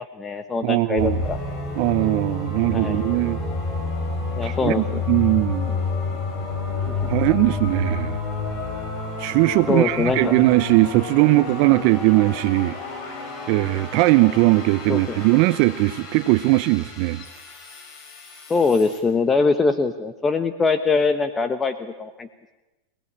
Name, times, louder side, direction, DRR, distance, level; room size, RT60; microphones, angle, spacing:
voice 1, 0.0-1.4 2.7-3.0 4.4-5.0 6.9-7.1 9.7-10.3 14.9-15.3 18.5-22.3, left 4 dB, 20° left, 10 dB, 1.2 m, -23 dB
voice 2, 0.6-1.2 1.8-3.4 4.4-5.8 7.1-8.1 9.2-12.7 13.5-17.2, right 20 dB, 55° right, 13 dB, 0.7 m, -19 dB
sound 1, 1.0-19.0, left 4 dB, 35° left, 5.7 m, -30 dB
26.5 x 18.0 x 8.7 m, 1.1 s
hypercardioid pair, 115°, 0 cm